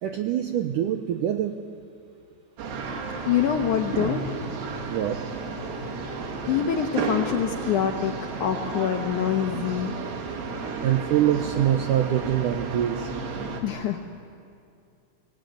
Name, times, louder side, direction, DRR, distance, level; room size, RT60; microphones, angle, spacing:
voice 1, 0.0-1.6 4.9-5.2 10.8-13.1, right 11 dB, 80° right, 6 dB, 1.9 m, -24 dB
sound 1, 2.6-13.6, right 4 dB, 65° right, 3.6 m, -32 dB
voice 2, 3.3-4.2 6.5-8.1 8.4-9.9 13.6-14.0, left 9 dB, 75° left, 4 dB, 1.9 m, -25 dB
25.0 x 18.0 x 9.2 m, 2.4 s
omnidirectional pair, 4.8 m